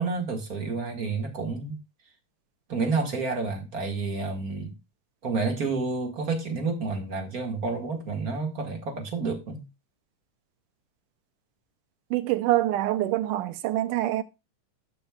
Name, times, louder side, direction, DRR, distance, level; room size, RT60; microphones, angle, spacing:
voice 1, 0.0-1.8 2.7-4.7 5.2-9.6, right 4 dB, 35° right, 1.8 m, -29 dB
voice 2, 12.1-14.2, right 15 dB, 85° right, 2.2 m, -25 dB
13.0 x 5.5 x 2.4 m
omnidirectional pair, 3.7 m